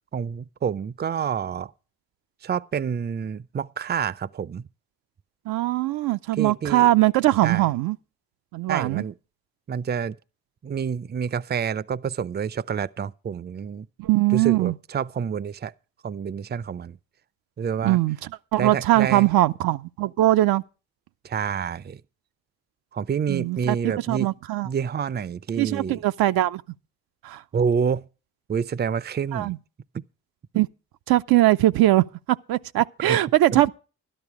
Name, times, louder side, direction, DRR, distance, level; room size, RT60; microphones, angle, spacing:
voice 1, 0.1-1.7 2.4-4.7 6.4-6.9 7.4-7.6 8.7-9.1 9.7-10.2 10.6-13.9 14.3-15.7 16.0-17.0 17.6-18.0 18.6-19.3 21.2-22.0 22.9-24.3 24.6-26.0 27.5-28.1 28.5-29.6 29.9-30.0 30.5-30.6 33.0-33.2 33.5-33.6, right 7 dB, 25° right, 0.5 m, -28 dB
voice 2, 5.5-8.0 8.5-9.0 14.0-14.7 17.8-18.2 18.5-20.6 23.3-24.7 25.6-26.6 27.2-27.4 29.3-29.6 30.5-30.7 31.1-33.7, right 16 dB, 70° right, 0.6 m, -21 dB
12.5 x 11.0 x 4.7 m
hypercardioid pair, 50°, 38 cm